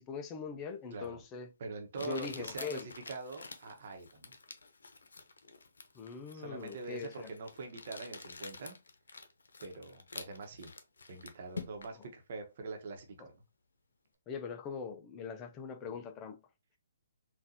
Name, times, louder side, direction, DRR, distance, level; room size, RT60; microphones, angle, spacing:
voice 1, 0.0-1.5 2.0-2.9 5.9-7.3 13.2-13.3 14.3-16.4, left 6 dB, 20° left, 0.5 m, -42 dB
Crumpling crinkling, 1.0-1.1 2.0-12.0, left 4 dB, 80° left, 0.7 m, -48 dB
voice 2, 1.6-4.3 6.3-8.8 9.6-10.7 11.1-13.4 15.9-16.0, right 3 dB, 50° right, 1.1 m, -44 dB
3.8 x 2.5 x 2.8 m
hypercardioid pair, 150°, 0 cm